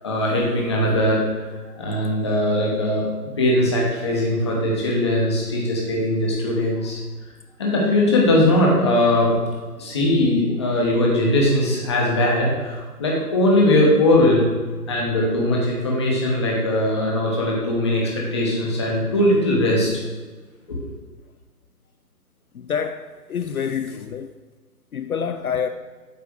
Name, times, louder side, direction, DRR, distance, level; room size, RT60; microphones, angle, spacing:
voice 1, 0.0-1.4 1.8-3.0 3.4-7.0 7.6-9.4 9.8-14.5 14.9-19.9 20.7-20.8, left 1 dB, 15° left, 0.9 m, -20 dB
voice 2, 22.5-24.3 24.9-25.7, left 7 dB, 65° left, 0.5 m, -27 dB
8.5 x 3.3 x 6.1 m
figure-of-eight pair, 150°, 48 cm